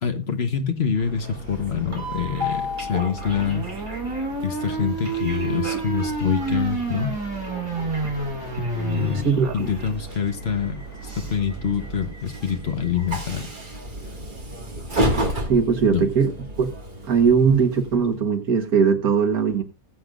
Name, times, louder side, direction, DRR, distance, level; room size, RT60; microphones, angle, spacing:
voice 1, 0.0-3.7 4.4-7.2 8.7-10.8 11.1-13.5 15.9-16.0, left 7 dB, 45° left, 1.3 m, -26 dB
sound 1, 0.9-12.1, right 1 dB, 85° left, 7.1 m, -44 dB
Train, 0.9-18.2, equal, 35° right, 2.0 m, -33 dB
sound 2, 3.3-9.2, right 3 dB, 15° right, 5.0 m, -28 dB
voice 2, 9.2-9.7 15.5-16.3 16.6-16.7 17.1-19.6, right 6 dB, 80° right, 1.9 m, -20 dB
20.0 x 7.9 x 2.5 m
omnidirectional pair, 1.5 m